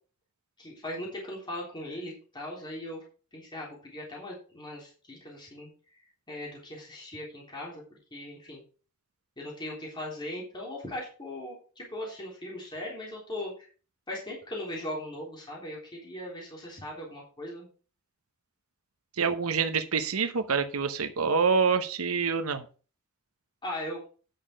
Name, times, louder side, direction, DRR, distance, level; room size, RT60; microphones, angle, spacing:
voice 1, 0.6-3.0 3.3-5.7 6.3-7.8 8.1-8.6 9.4-13.7 14.1-17.7 23.6-24.0, left 1 dB, 20° left, -3 dB, 3.6 m, -39 dB
voice 2, 19.2-22.6, right 5 dB, 85° right, 8 dB, 0.9 m, -26 dB
9.6 x 6.5 x 5.1 m, 0.37 s
head